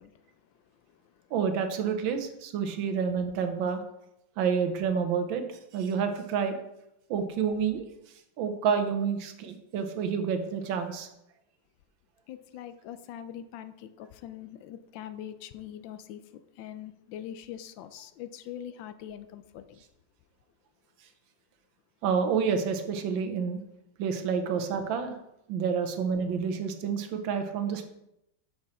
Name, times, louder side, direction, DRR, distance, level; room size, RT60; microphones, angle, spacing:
voice 1, 0.0-1.3 12.3-19.8, left 10 dB, 80° left, 11 dB, 1.3 m, -43 dB
voice 2, 1.3-3.8 4.4-5.4 5.7-6.6 7.1-7.9 8.4-11.1 22.0-23.6 24.0-25.2 25.5-27.9, right 6 dB, 85° right, 7 dB, 1.5 m, -29 dB
6.3 x 6.0 x 4.2 m, 0.84 s
omnidirectional pair, 2.1 m